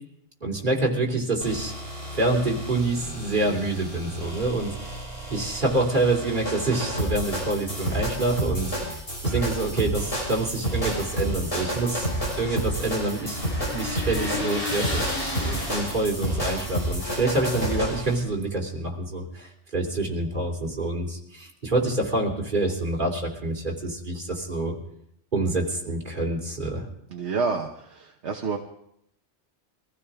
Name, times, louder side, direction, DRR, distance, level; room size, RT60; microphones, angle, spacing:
voice 1, 0.4-1.7 2.1-4.7 5.3-12.1 12.4-13.4 13.7-15.1 15.4-24.8 25.3-26.9, right 2 dB, 45° right, -1 dB, 3.0 m, -27 dB
sound 1, 1.4-18.2, equal, 55° left, 6.1 m, -30 dB
sound 2, 10.7-16.2, left 2 dB, 30° left, 5.6 m, -34 dB
voice 2, 27.1-28.6, right 5 dB, 70° right, 2 dB, 1.4 m, -28 dB
24.0 x 15.5 x 3.6 m, 0.72 s
omnidirectional pair, 1.2 m